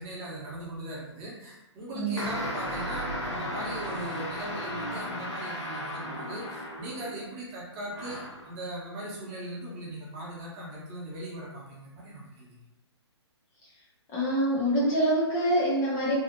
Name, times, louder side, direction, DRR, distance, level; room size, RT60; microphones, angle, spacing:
voice 1, 0.0-12.6, right 1 dB, 30° right, -5 dB, 0.8 m, -39 dB
voice 2, 1.9-2.3 14.1-16.2, right 1 dB, 20° left, -6 dB, 0.5 m, -25 dB
sound 1, 2.2-7.2 7.9-8.5, equal, 80° left, 1.0 m, -35 dB
2.7 x 2.4 x 2.6 m, 0.99 s
hypercardioid pair, 140°, 15 cm